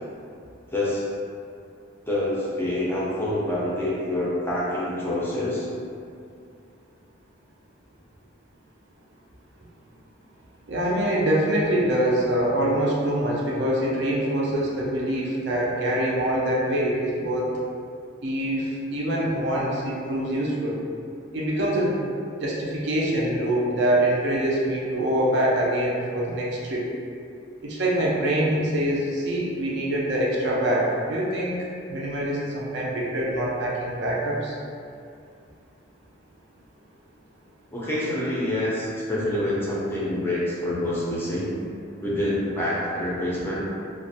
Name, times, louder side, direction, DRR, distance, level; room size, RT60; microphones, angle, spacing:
voice 1, 0.7-1.1 2.1-5.7 37.7-41.5 42.0-43.7, left 1 dB, 10° left, -7 dB, 0.4 m, -26 dB
voice 2, 10.7-17.6 18.2-20.8 21.3-22.0 22.4-26.9 27.6-31.6 31.9-34.6, right 1 dB, 60° right, -4 dB, 0.4 m, -24 dB
2.4 x 2.0 x 2.6 m, 2.5 s
head